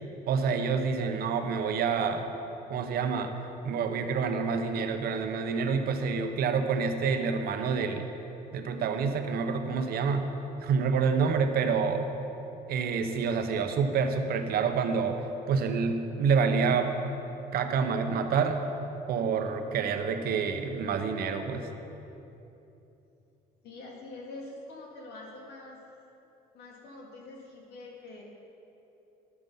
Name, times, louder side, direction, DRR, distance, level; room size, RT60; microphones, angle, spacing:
voice 1, 0.3-2.3 2.7-3.3 3.6-8.1 8.5-10.3 10.6-12.1 12.7-16.9 17.5-18.6 19.1-21.7, right 5 dB, 65° right, 7 dB, 0.9 m, -28 dB
voice 2, 23.6-25.8 26.5-28.2, left 2 dB, 80° left, -2 dB, 2.3 m, -45 dB
11.0 x 9.1 x 5.6 m, 3.0 s
cardioid pair, 110°, 17 cm